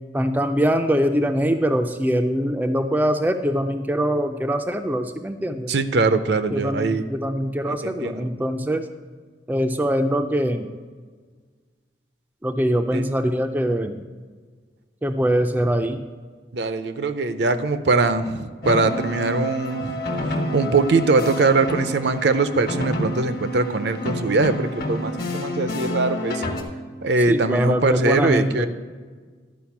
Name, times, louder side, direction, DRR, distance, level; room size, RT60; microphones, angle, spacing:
voice 1, 0.1-5.7 6.5-8.8 9.5-10.7 12.4-14.0 15.0-16.0 27.3-28.7, equal, 10° right, 6 dB, 0.4 m, -23 dB
voice 2, 5.7-7.0 7.7-8.3 12.9-13.0 16.5-26.4 27.0-28.7, right 3 dB, 65° right, 11 dB, 0.6 m, -22 dB
sound 1, 18.6-26.6, left 1 dB, 50° left, 1.2 m, -29 dB
12.0 x 5.0 x 5.9 m, 1.5 s
head